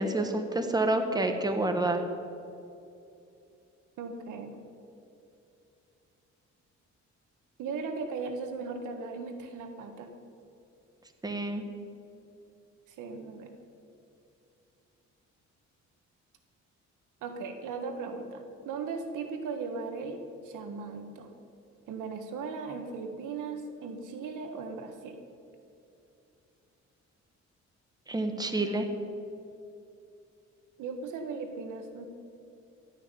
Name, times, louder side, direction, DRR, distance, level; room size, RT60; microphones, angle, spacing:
voice 1, 0.0-2.0 11.2-11.6 28.1-28.9, right 2 dB, 15° right, 5 dB, 1.6 m, -28 dB
voice 2, 4.0-4.6 7.6-10.1 12.9-13.5 17.2-21.3 21.9-25.2 30.8-32.1, right 4 dB, 85° right, 6 dB, 1.6 m, -37 dB
15.5 x 6.2 x 9.9 m, 2.6 s
cardioid pair, 90°, 30 cm